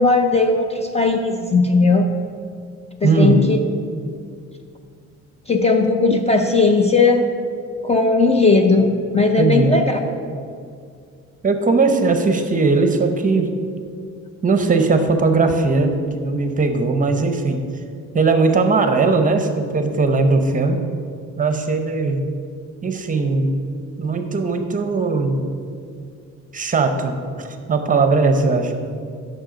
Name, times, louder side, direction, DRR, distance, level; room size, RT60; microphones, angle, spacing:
voice 1, 0.0-2.1 3.0-3.6 5.5-7.3 7.8-10.0, left 3 dB, 20° left, 4 dB, 0.5 m, -17 dB
voice 2, 3.0-3.4 9.4-9.7 11.4-13.5 14.4-17.6 18.1-20.8 21.4-22.2 22.8-23.6 24.0-25.4 26.5-28.7, right 3 dB, 25° right, 6 dB, 0.8 m, -19 dB
8.9 x 6.7 x 5.1 m, 2.3 s
cardioid pair, 130°, 30 cm